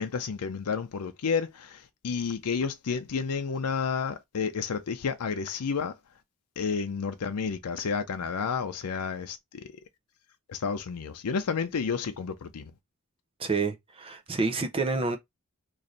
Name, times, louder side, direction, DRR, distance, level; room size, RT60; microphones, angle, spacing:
voice 1, 0.0-5.9 6.6-9.7 10.5-12.7, left 5 dB, 85° left, 0.5 m, -31 dB
voice 2, 13.4-15.2, right 3 dB, 25° right, 0.5 m, -28 dB
3.2 x 2.6 x 3.8 m
head